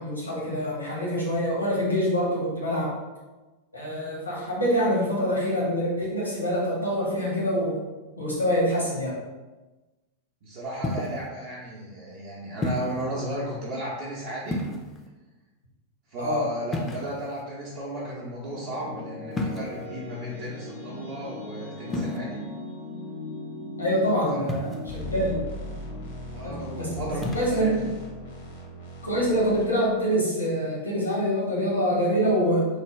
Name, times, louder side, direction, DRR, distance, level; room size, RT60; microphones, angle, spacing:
voice 1, 0.0-2.9 3.7-7.8 8.2-9.2 16.2-16.5 23.8-25.5 26.4-27.9 29.0-32.7, equal, 85° left, -5 dB, 1.1 m, -25 dB
voice 2, 10.4-14.6 16.1-22.4 24.3-24.8 26.3-27.7, right 1 dB, 45° right, -6 dB, 0.7 m, -34 dB
sound 1, 10.8-11.3 12.6-13.0 14.4-15.1 16.7-17.4 19.3-19.9 21.9-22.2 24.5-25.0 27.1-27.5, left 1 dB, 20° left, 0.4 m, -31 dB
sound 2, 18.1-28.9, left 2 dB, 85° right, 0.7 m, -40 dB
sound 3, 24.9-29.7, equal, 60° left, 0.7 m, -39 dB
3.2 x 2.2 x 3.2 m, 1.2 s
figure-of-eight pair, 90°, 0 cm